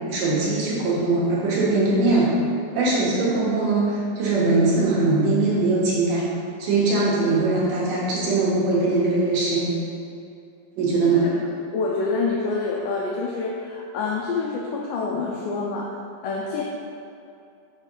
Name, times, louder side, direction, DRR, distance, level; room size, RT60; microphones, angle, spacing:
voice 1, 0.1-2.3 2.7-6.3 6.6-9.7 10.8-11.3, right 3 dB, 65° right, -7 dB, 2.9 m, -21 dB
voice 2, 11.7-16.0 16.2-16.6, left 4 dB, 85° left, -2 dB, 1.9 m, -27 dB
6.2 x 5.3 x 5.5 m, 2.6 s
omnidirectional pair, 4.5 m